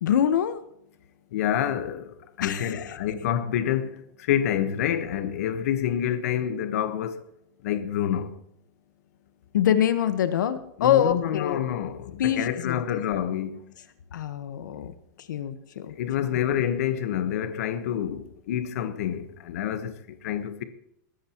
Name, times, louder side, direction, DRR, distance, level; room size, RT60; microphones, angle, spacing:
voice 1, 0.0-0.6 2.4-3.0 9.5-11.6 12.2-13.0 14.1-15.9, left 9 dB, 75° left, 1.4 m, -25 dB
voice 2, 1.3-7.2 7.6-8.3 10.8-13.6 16.0-20.6, left 10 dB, 50° left, 1.4 m, -28 dB
21.5 x 13.0 x 3.1 m
supercardioid pair, 180°, 10 cm